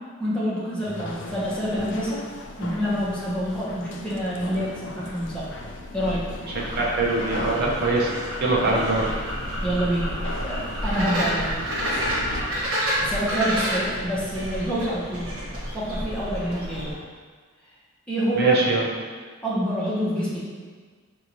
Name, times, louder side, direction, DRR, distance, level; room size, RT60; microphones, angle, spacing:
voice 1, 0.2-2.2 2.6-5.5 5.9-6.2 8.7-8.8 9.6-11.5 13.0-15.3 15.7-16.9 18.1-18.6 19.4-20.4, equal, 5° left, -10 dB, 1.1 m, -27 dB
sound 1, 0.8-12.4, left 1 dB, 55° left, 0.4 m, -37 dB
sound 2, 6.6-16.9, equal, 70° right, 1.3 m, -29 dB
voice 2, 6.8-8.1 8.4-9.1 18.3-18.9, right 2 dB, 45° right, -4 dB, 0.8 m, -22 dB
5.6 x 2.6 x 3.0 m, 1.5 s
head